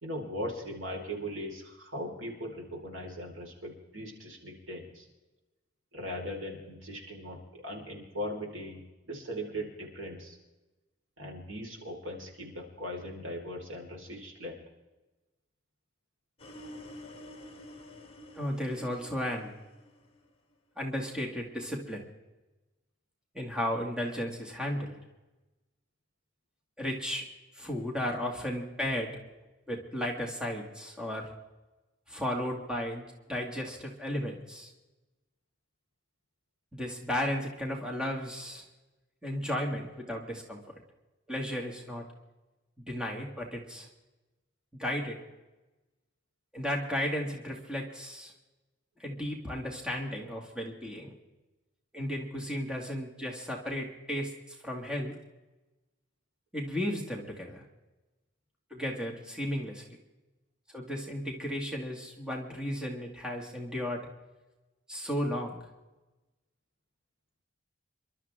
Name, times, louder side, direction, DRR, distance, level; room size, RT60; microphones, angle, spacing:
voice 1, 0.0-5.1 5.9-7.4 7.6-10.4 11.2-14.6, equal, 75° right, -1 dB, 4.7 m, -39 dB
sound 1, 16.4-20.5, left 1 dB, 30° left, 2.0 m, -49 dB
voice 2, 18.3-19.5 20.8-22.0 23.3-24.9 26.8-27.2 27.5-29.1 29.7-31.3 32.1-34.7 36.7-38.6 39.2-40.6 41.3-42.0 42.9-43.9 44.8-45.2 46.5-48.3 49.0-51.1 51.9-55.1 56.5-57.6 58.7-59.8 60.7-64.0 64.9-65.6, equal, 5° right, -1 dB, 2.3 m, -34 dB
27.5 x 12.5 x 3.7 m, 1.1 s
head